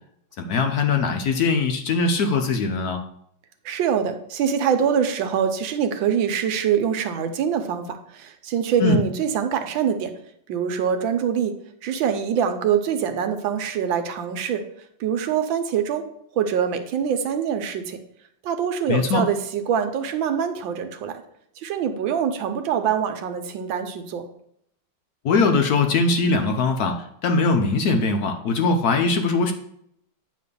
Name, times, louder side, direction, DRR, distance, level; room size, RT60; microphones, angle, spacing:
voice 1, 0.4-3.0 8.8-9.0 18.9-19.2 25.2-27.0 27.2-29.5, left 4 dB, 65° left, 5 dB, 1.1 m, -21 dB
voice 2, 3.6-10.1 10.5-11.5 11.8-14.6 15.0-16.1 16.3-18.0 18.4-21.2 21.6-24.3, right 8 dB, 85° right, 7 dB, 1.5 m, -24 dB
9.1 x 3.2 x 6.7 m, 0.72 s
omnidirectional pair, 2.1 m